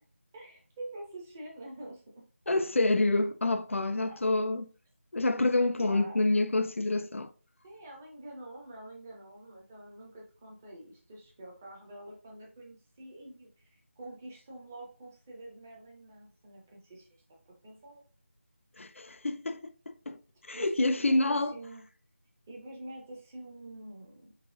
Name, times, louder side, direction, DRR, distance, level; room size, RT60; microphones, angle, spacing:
voice 1, 0.3-2.0 4.0-4.2 5.3-6.2 7.6-17.1 17.6-18.0 20.5-21.8 22.5-24.4, right 1 dB, 10° right, 0.5 m, -47 dB
voice 2, 2.5-4.7 5.1-7.3 18.8-20.2 20.5-21.6, left 2 dB, 65° left, 0.3 m, -27 dB
4.3 x 3.9 x 2.6 m
figure-of-eight pair, 165°, 8 cm